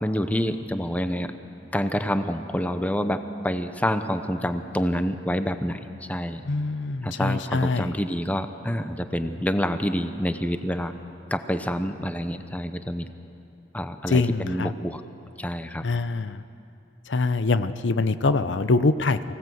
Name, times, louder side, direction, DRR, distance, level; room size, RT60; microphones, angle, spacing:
voice 1, 0.0-1.3 1.7-5.8 6.1-6.4 7.0-10.9 11.3-13.1 13.7-15.0 15.4-15.8, equal, 10° left, 9 dB, 0.8 m, -27 dB
voice 2, 6.4-7.9 14.1-14.7 15.8-16.4 17.1-19.2, left 3 dB, 85° left, 13 dB, 0.7 m, -24 dB
24.5 x 16.5 x 7.9 m, 2.7 s
head